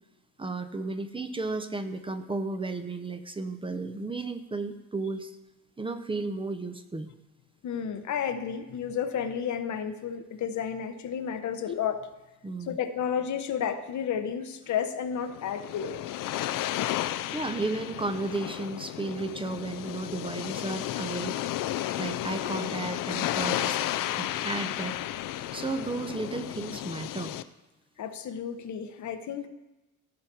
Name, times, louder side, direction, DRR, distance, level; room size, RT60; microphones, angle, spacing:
voice 1, 0.4-5.4 5.8-7.1 12.4-12.8 17.0-21.4 22.0-23.8 24.2-25.0 25.5-27.3, right 3 dB, 15° right, 9 dB, 0.6 m, -33 dB
voice 2, 7.6-12.1 12.7-16.0 28.0-29.5, left 8 dB, 65° left, 9 dB, 0.9 m, -32 dB
sound 1, 15.2-27.4, left 13 dB, 80° left, 0.5 m, -33 dB
16.0 x 5.7 x 4.5 m, 1.0 s
cardioid pair, 120°, 32 cm